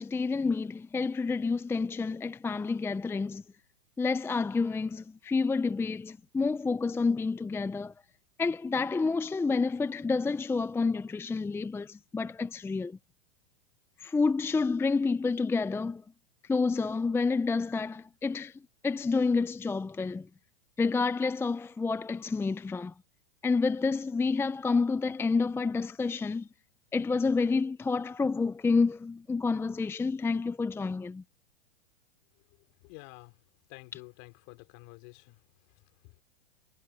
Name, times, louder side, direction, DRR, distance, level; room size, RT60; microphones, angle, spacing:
voice 1, 0.0-3.4 4.0-7.9 8.4-13.0 14.0-16.0 16.4-20.3 20.8-22.9 23.4-26.5 26.9-31.2, left 4 dB, 10° left, 0.6 m, -29 dB
voice 2, 32.5-33.4 33.7-36.2, left 33 dB, 50° left, 3.4 m, -51 dB
hypercardioid pair, 110°, 31 cm